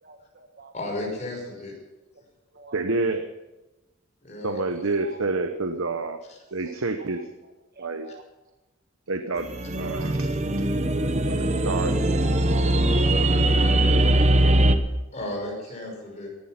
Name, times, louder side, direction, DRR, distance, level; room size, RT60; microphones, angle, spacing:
voice 1, 0.0-0.7 2.5-2.8 5.0-5.2 7.0-7.1 7.8-8.2 11.1-11.2 11.5-11.6 13.9-14.1 15.4-15.5, right 2 dB, 50° right, 5 dB, 1.5 m, -48 dB
voice 2, 0.7-1.7 4.2-4.6 6.3-6.4 15.1-16.3, left 1 dB, 35° left, 0 dB, 5.6 m, -33 dB
voice 3, 1.3-1.7 2.7-3.3 4.4-6.2 6.5-7.3 7.8-8.1 9.1-10.6 11.3-12.2 15.6-15.8, right 3 dB, 80° right, 8 dB, 1.0 m, -29 dB
sound 1, 9.5-14.8, right 1 dB, 35° right, 1.0 m, -21 dB
18.5 x 11.5 x 5.9 m, 1.0 s
head